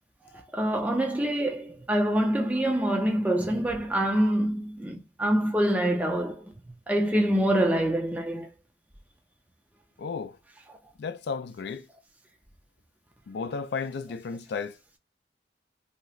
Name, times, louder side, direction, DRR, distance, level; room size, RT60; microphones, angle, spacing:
voice 1, 0.3-6.5 6.9-8.5, right 1 dB, 10° right, 0.4 m, -25 dB
voice 2, 10.0-10.4 11.0-11.9 13.3-15.0, left 5 dB, 65° left, 0.4 m, -34 dB
2.8 x 2.4 x 3.0 m
head